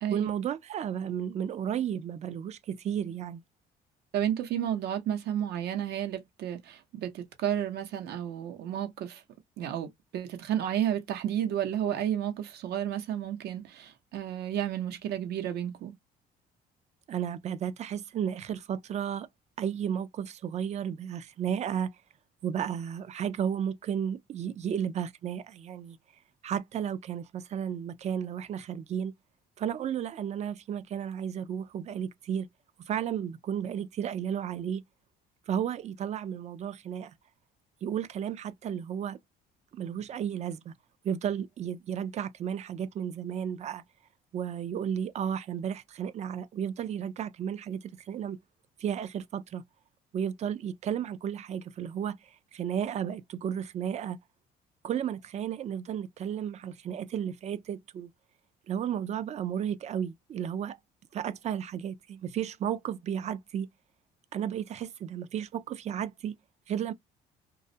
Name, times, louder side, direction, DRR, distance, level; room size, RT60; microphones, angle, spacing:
voice 1, 0.1-3.4 17.1-19.3 19.6-22.0 22.4-26.0 26.4-29.1 29.6-32.5 32.9-34.8 35.5-37.1 37.8-39.2 39.7-40.7 41.0-43.8 44.3-48.4 48.8-49.6 50.1-52.2 52.5-54.2 54.8-58.1 58.7-60.8 61.1-63.7 64.3-66.4 66.7-66.9, right 9 dB, 40° right, 0.4 m, -33 dB
voice 2, 4.1-9.2 9.6-16.0, right 10 dB, 75° right, 0.8 m, -32 dB
2.3 x 2.0 x 2.6 m
cardioid pair, 110°, 17 cm